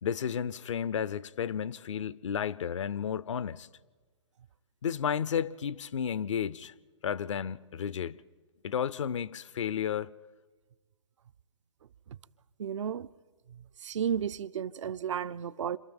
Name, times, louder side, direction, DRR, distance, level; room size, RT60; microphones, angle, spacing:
voice 1, 0.0-3.7 4.8-6.7 7.0-8.2 8.6-10.1, left 8 dB, 75° left, 0.6 m, -32 dB
voice 2, 12.6-13.1 13.8-15.8, right 8 dB, 70° right, 0.6 m, -33 dB
26.0 x 13.0 x 8.9 m
hypercardioid pair, 130°, 16 cm